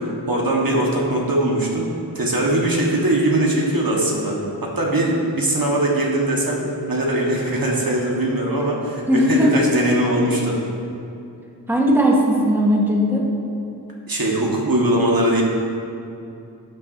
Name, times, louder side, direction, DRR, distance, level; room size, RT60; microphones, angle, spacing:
voice 1, 0.0-6.6 6.9-10.6 14.1-15.4, right 1 dB, 55° right, -2 dB, 1.5 m, -21 dB
voice 2, 9.1-9.6 11.7-13.3, equal, 5° right, -3 dB, 1.3 m, -17 dB
11.5 x 9.5 x 2.7 m, 2.7 s
wide cardioid pair, 75°, 43 cm